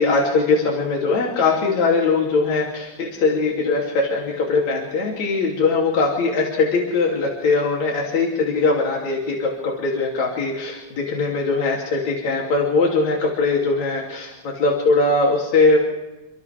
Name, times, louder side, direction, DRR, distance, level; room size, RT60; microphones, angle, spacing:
voice 1, 0.0-15.8, left 3 dB, 70° left, -2 dB, 4.3 m, -21 dB
29.5 x 26.0 x 3.6 m, 1.1 s
omnidirectional pair, 3.3 m